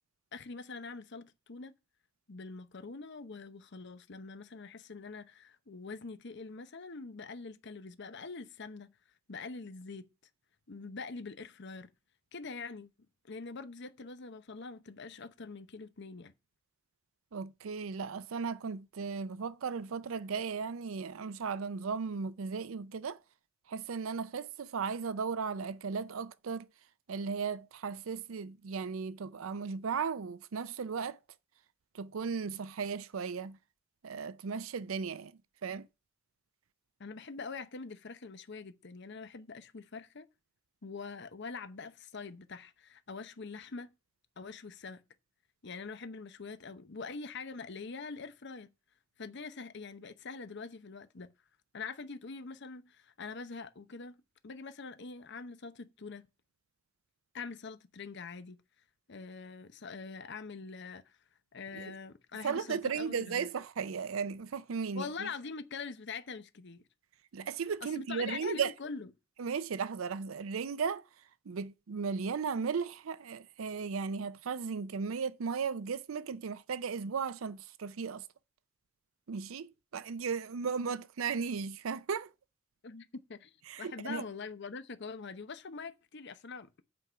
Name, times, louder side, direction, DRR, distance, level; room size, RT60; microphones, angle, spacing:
voice 1, 0.3-1.7 2.3-8.9 9.3-10.1 10.7-11.9 12.3-12.9 13.3-16.3 37.0-40.3 40.8-43.9 44.4-45.0 45.6-48.7 49.2-51.3 51.7-56.3 57.3-58.6 59.1-61.2 61.5-63.5 65.0-66.8 67.8-69.1 82.8-83.5 83.8-86.8, left 4 dB, 60° left, 0.8 m, -44 dB
voice 2, 17.3-23.2 23.7-26.7 27.1-31.2 31.9-33.6 34.0-35.3 35.6-35.9 61.7-61.9 62.4-65.3 67.3-68.7 69.4-71.0 71.5-78.2 79.3-82.3 83.7-84.2, right 5 dB, 85° right, 0.5 m, -36 dB
8.4 x 4.8 x 7.0 m
head